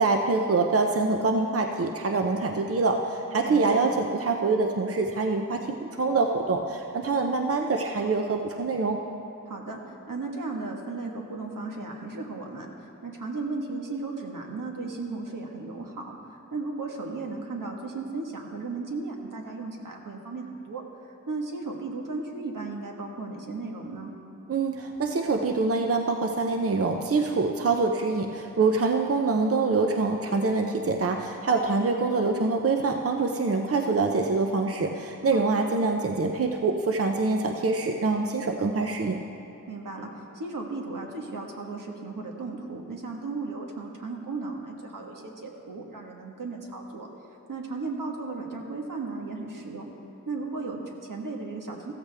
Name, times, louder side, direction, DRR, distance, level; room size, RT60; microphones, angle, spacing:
voice 1, 0.0-9.0 24.5-39.2, right 3 dB, 45° right, 3 dB, 0.7 m, -25 dB
voice 2, 3.4-3.9 9.5-9.8 10.1-16.2 16.5-24.1 35.3-35.7 39.7-40.1 40.3-47.1 47.5-49.8 50.3-51.9, right 3 dB, 80° right, 1 dB, 1.5 m, -35 dB
15.0 x 14.0 x 3.5 m, 2.9 s
wide cardioid pair, 95°, 32 cm